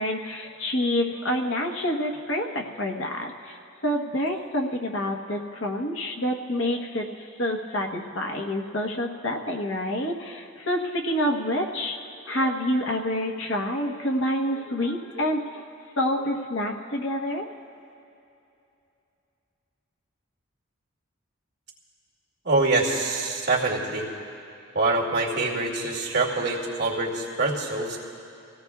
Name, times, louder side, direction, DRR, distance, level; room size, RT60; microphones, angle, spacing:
voice 1, 0.0-12.0 12.3-15.6 16.0-17.4, left 1 dB, 70° left, 1 dB, 1.2 m, -28 dB
voice 2, 22.4-24.1 24.7-28.0, right 3 dB, 55° right, -4 dB, 2.4 m, -25 dB
27.0 x 17.0 x 2.4 m, 2.7 s
head